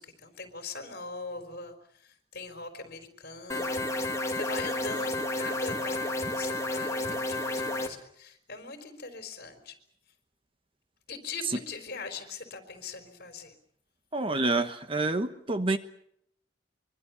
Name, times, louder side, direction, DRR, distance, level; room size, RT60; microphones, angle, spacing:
voice 1, 0.0-9.8 11.1-13.5, left 4 dB, 55° left, 7 dB, 4.3 m, -41 dB
sound 1, 3.5-7.9, left 1 dB, 15° left, 2.4 m, -31 dB
voice 2, 14.1-15.8, right 2 dB, 30° right, 9 dB, 1.2 m, -28 dB
24.5 x 23.5 x 7.1 m, 0.71 s
head